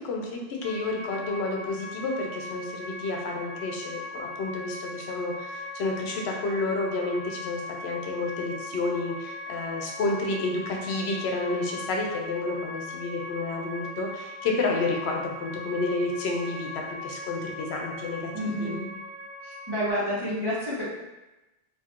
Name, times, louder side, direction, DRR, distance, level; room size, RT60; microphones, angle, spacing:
voice 1, 0.0-18.8, left 3 dB, 90° left, 1 dB, 0.9 m, -30 dB
sound 1, 0.6-19.9, left 1 dB, 60° right, 0.9 m, -39 dB
voice 2, 18.3-18.9 19.4-20.9, equal, 25° right, -9 dB, 1.1 m, -29 dB
4.2 x 2.7 x 2.4 m, 1.0 s
omnidirectional pair, 1.1 m